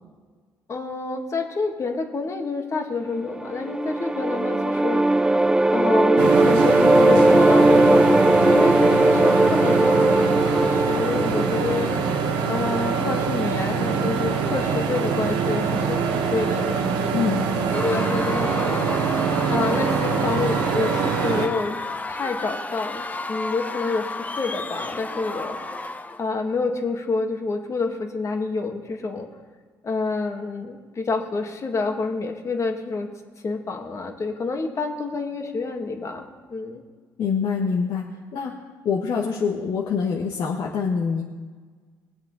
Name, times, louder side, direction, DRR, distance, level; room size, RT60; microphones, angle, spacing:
voice 1, 0.7-5.4 5.7-10.0 10.5-12.0 12.5-17.0 17.7-18.9 19.5-21.8 22.1-25.9 26.2-29.3 29.8-33.1 33.4-36.8, left 3 dB, 40° left, 3 dB, 1.9 m, -28 dB
sound 1, 3.3-12.5, right 2 dB, 10° right, 0.4 m, -18 dB
sound 2, 6.2-21.5, right 5 dB, 80° right, 1.3 m, -24 dB
voice 2, 17.1-17.4 37.2-38.0 38.3-38.5 38.8-41.2, left 6 dB, 60° left, -2 dB, 1.4 m, -25 dB
Screaming / Cheering / Crowd, 17.7-26.3, left 2 dB, 20° left, 0.8 m, -32 dB
21.0 x 7.9 x 4.1 m, 1.5 s
supercardioid pair, 70°, 8 cm